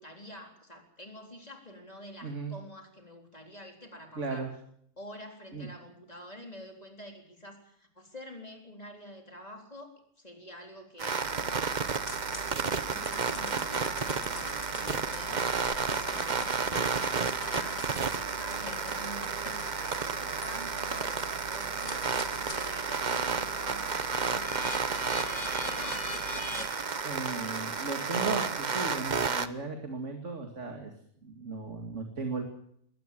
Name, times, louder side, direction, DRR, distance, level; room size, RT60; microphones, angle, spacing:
voice 1, 0.0-4.5 5.0-9.9 10.2-12.1 12.6-26.0, equal, 30° left, 3 dB, 4.1 m, -48 dB
voice 2, 2.2-2.5 4.2-4.5 5.5-5.7 14.8-15.0 27.0-30.9 31.2-32.4, right 4 dB, 60° right, 4 dB, 2.6 m, -36 dB
sound 1, 11.0-29.5, right 5 dB, 35° right, 1.0 m, -32 dB
sound 2, 11.2-26.7, right 4 dB, 85° right, 1.9 m, -48 dB
sound 3, 12.1-22.8 23.2-28.8, left 3 dB, 65° left, 2.7 m, -44 dB
21.5 x 18.0 x 7.6 m, 0.68 s
omnidirectional pair, 1.4 m